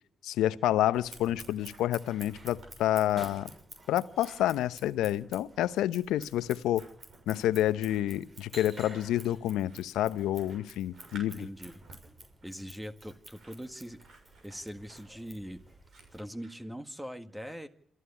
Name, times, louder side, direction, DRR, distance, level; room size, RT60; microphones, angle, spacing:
voice 1, 0.2-3.5 3.9-6.8 7.3-11.5, left 13 dB, 75° left, 0.9 m, -29 dB
Scissors, 0.9-16.2, right 2 dB, 40° right, 6.1 m, -51 dB
Scissors 2, 1.2-2.7 3.0-16.7, right 2 dB, 65° right, 6.8 m, -58 dB
voice 2, 11.1-11.8 12.4-14.0 14.4-15.6 16.1-17.7, equal, 10° right, 1.7 m, -42 dB
27.5 x 11.5 x 9.8 m
hypercardioid pair, 45°, 0 cm